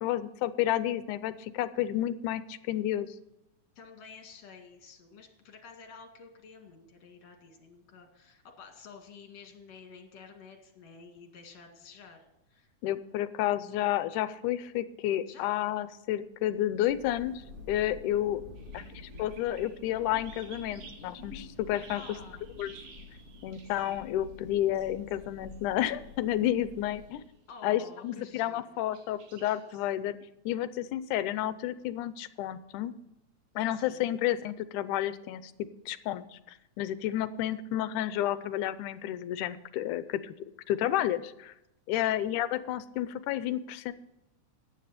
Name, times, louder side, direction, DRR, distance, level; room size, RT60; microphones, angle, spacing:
voice 1, 0.0-3.1 12.8-18.4 18.7-18.8 19.2-22.0 22.6-22.7 23.4-27.2 27.6-30.2 30.5-32.9 33.6-35.5 35.9-36.4 36.8-40.3 40.7-41.5 41.9-43.9, left 12 dB, 80° left, 14 dB, 2.1 m, -31 dB
voice 2, 3.8-13.0 15.3-15.5 18.4-18.7 21.9-22.5 23.9-24.0 27.5-28.8 33.7-34.1 41.9-42.2, left 5 dB, 60° left, 4 dB, 3.1 m, -51 dB
Thunder, 16.5-27.5, left 3 dB, 30° right, 1.4 m, -49 dB
sound 1, 18.6-24.2 24.7-25.2 25.5-25.6 26.0-26.2 26.9-27.2 27.9-28.2 28.9-29.8, right 4 dB, 80° right, 3.5 m, -54 dB
14.5 x 9.9 x 4.2 m, 0.88 s
omnidirectional pair, 3.7 m